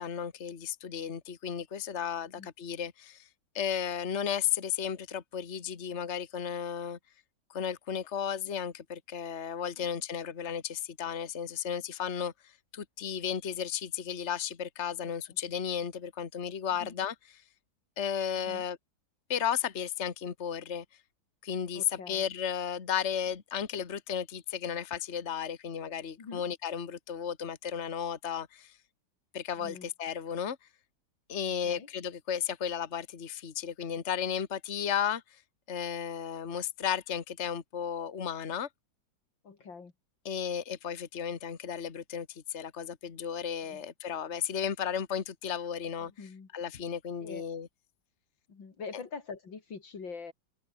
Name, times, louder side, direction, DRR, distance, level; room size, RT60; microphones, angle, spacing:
voice 1, 0.0-3.3 3.6-7.0 7.5-17.1 18.0-18.8 19.3-20.9 21.4-28.7 29.3-30.6 31.3-35.2 35.7-38.7 40.3-46.1 46.5-47.7, left 8 dB, 40° left, 1.8 m, -34 dB
voice 2, 21.7-22.2 26.2-26.4 29.6-29.9 31.5-31.9 39.4-39.9 43.6-43.8 46.0-46.5 47.2-47.4 48.5-50.3, left 5 dB, 85° left, 3.7 m, -44 dB
open air
omnidirectional pair, 2.0 m